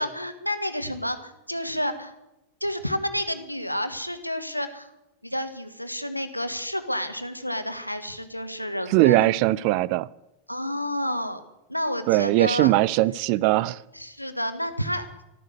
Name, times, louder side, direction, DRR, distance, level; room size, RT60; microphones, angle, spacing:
voice 1, 0.0-2.1 2.6-4.9 5.2-9.3 10.5-11.4 11.7-12.7 13.9-15.2, equal, 90° left, 9 dB, 1.5 m, -30 dB
voice 2, 8.9-10.1 12.1-13.8, right 17 dB, 45° right, 21 dB, 0.5 m, -20 dB
14.0 x 14.0 x 6.7 m, 0.91 s
figure-of-eight pair, 90°, 0 cm